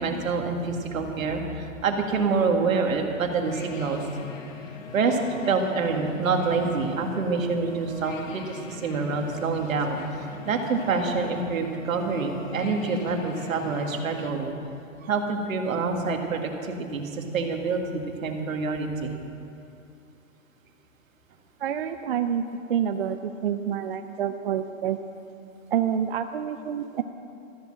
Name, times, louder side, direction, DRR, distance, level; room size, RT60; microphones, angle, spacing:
voice 1, 0.0-4.0 4.9-5.2 5.5-14.5 15.0-19.1, right 4 dB, 75° right, 3 dB, 2.0 m, -27 dB
sound 1, 3.4-14.3, left 4 dB, 70° left, 1.6 m, -42 dB
voice 2, 21.6-25.0 25.7-27.0, right 9 dB, 45° right, 8 dB, 0.5 m, -28 dB
14.0 x 8.6 x 7.7 m, 2.7 s
hypercardioid pair, 160°, 40 cm